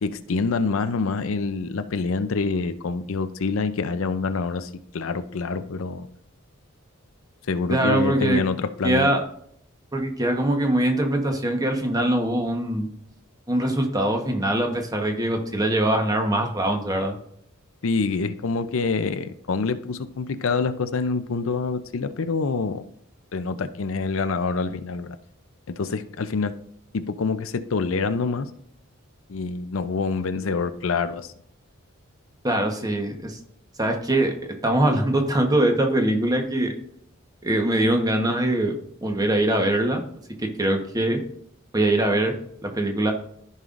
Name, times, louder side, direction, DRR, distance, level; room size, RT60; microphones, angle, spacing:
voice 1, 0.0-6.1 7.5-9.1 17.8-22.8 23.3-25.2 25.7-26.5 26.9-28.5 29.3-31.3, left 4 dB, 70° left, 11 dB, 0.5 m, -26 dB
voice 2, 7.7-8.4 8.8-9.2 9.9-12.9 13.5-17.1 32.4-33.4 33.8-34.4 34.6-36.7 37.4-40.0 40.4-41.2 41.7-42.4 42.6-43.1, right 1 dB, 20° right, 3 dB, 1.1 m, -22 dB
14.0 x 5.5 x 2.5 m, 0.69 s
head